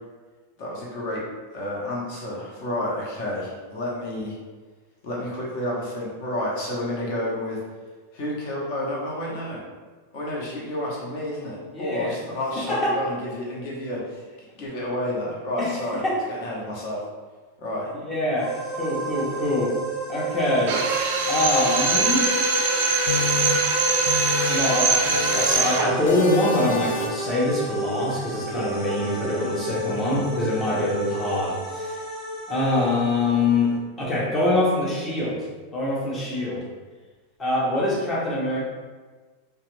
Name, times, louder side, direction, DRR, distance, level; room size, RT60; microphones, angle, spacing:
voice 1, 0.6-1.2 1.5-4.4 5.0-7.6 8.1-9.6 10.1-14.2 14.6-16.0 16.3-17.0 17.6-17.9, left 1 dB, 50° left, -4 dB, 0.8 m, -30 dB
voice 2, 11.7-12.2 12.7-13.0 15.6-15.7 16.0-16.2 17.9-19.7 20.1-20.8 21.3-22.3 24.5-31.9 32.5-35.4 35.7-36.6 37.4-38.6, left 2 dB, 15° left, -5 dB, 0.7 m, -24 dB
sound 1, 18.4-33.8, right 1 dB, ahead, 1.1 m, -32 dB
Drill, 20.7-26.0, right 3 dB, 60° right, 0.4 m, -22 dB
sound 2, 23.1-24.8 25.1-25.7 26.1-27.3, left 4 dB, 85° left, 0.3 m, -31 dB
2.3 x 2.1 x 3.0 m, 1.4 s
supercardioid pair, 150°, 0 cm